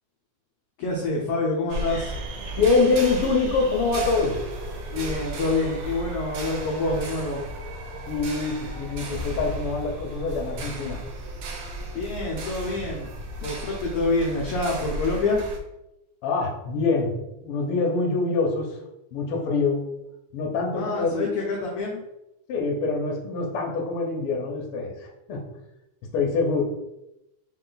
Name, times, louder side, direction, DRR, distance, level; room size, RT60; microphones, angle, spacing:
voice 1, 0.8-2.2 4.9-7.5 11.9-13.1 13.4-15.5 20.7-22.1, left 2 dB, 85° left, -2 dB, 1.3 m, -27 dB
sound 1, 1.7-15.6, right 1 dB, 75° right, 1.5 m, -34 dB
voice 2, 2.5-4.4 8.1-11.0 16.2-18.8 19.1-19.9 20.3-21.2 22.5-25.5 26.1-26.6, left 4 dB, 65° left, 0 dB, 1.4 m, -25 dB
4.5 x 3.1 x 3.9 m, 0.90 s
omnidirectional pair, 3.5 m